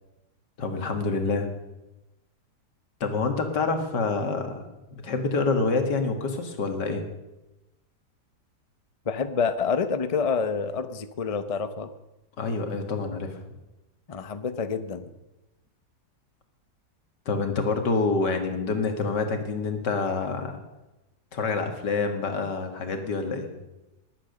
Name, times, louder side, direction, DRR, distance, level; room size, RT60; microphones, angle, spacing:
voice 1, 0.6-1.5 3.0-4.6 4.9-7.0 12.4-13.3 17.3-20.5 21.3-23.5, left 4 dB, 80° left, 6 dB, 2.4 m, -27 dB
voice 2, 9.0-11.9 14.1-15.1, left 5 dB, 35° left, 11 dB, 0.5 m, -27 dB
20.5 x 8.9 x 6.6 m, 1.0 s
omnidirectional pair, 1.8 m